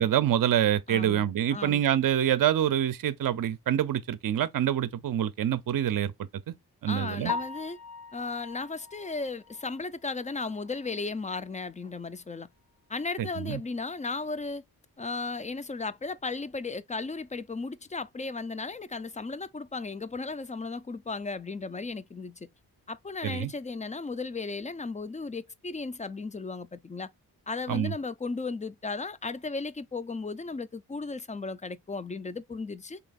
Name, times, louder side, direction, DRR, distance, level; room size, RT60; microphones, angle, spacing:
voice 1, 0.0-6.1 6.5-6.6 6.8-7.3 13.2-13.6 23.2-23.5 27.7-27.9, right 10 dB, 55° right, 0.5 m, -26 dB
voice 2, 0.9-1.2 1.5-1.8 6.9-7.8 8.1-12.5 12.9-14.6 15.0-22.5 22.9-27.1 27.5-33.0, left 3 dB, 20° left, 0.4 m, -35 dB
Piano, 7.3-11.2 11.6-11.7 12.2-12.3 12.7-12.8 15.9-16.0 24.4-24.7, left 4 dB, 85° left, 1.4 m, -41 dB
3.3 x 2.9 x 3.9 m
cardioid pair, 60°, 39 cm